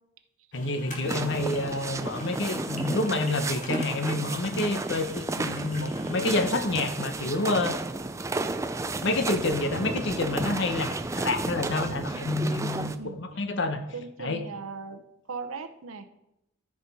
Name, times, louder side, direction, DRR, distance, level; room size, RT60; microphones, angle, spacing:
voice 1, 0.5-7.7 8.9-12.9 13.2-13.8 14.2-14.4, left 2 dB, 60° left, 8 dB, 0.9 m, -28 dB
sound 1, 0.5-6.3, left 2 dB, 35° left, 1.7 m, -45 dB
sound 2, 1.0-13.0, right 2 dB, 15° right, 0.3 m, -32 dB
voice 2, 12.7-13.2 13.9-16.0, right 4 dB, 80° right, 9 dB, 0.8 m, -39 dB
14.0 x 5.1 x 4.1 m, 0.85 s
head